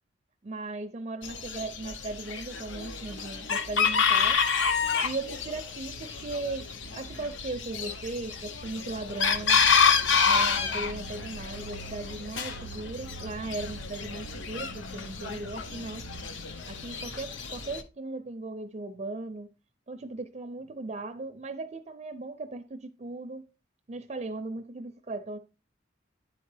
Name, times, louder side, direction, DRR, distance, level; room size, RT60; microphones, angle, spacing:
voice 1, 0.4-4.4 5.0-6.7 6.9-9.6 10.2-16.0 16.7-19.5 19.9-23.4 23.9-25.4, right 2 dB, 35° right, 0.4 m, -37 dB
Chicken rooster, 1.2-17.8, left 6 dB, 75° left, 0.8 m, -29 dB
10.0 x 4.4 x 3.3 m
head